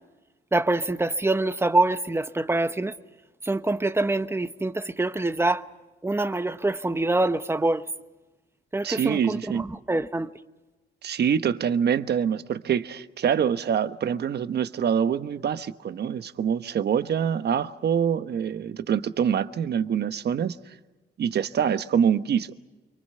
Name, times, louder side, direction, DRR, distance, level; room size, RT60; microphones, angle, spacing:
voice 1, 0.5-2.9 3.4-5.6 6.0-7.8 8.7-10.3, right 2 dB, 10° right, 1.0 m, -25 dB
voice 2, 8.8-9.6 11.0-20.6 21.2-22.5, right 8 dB, 55° right, 1.2 m, -25 dB
29.5 x 24.0 x 5.6 m
cardioid pair, 90°, 20 cm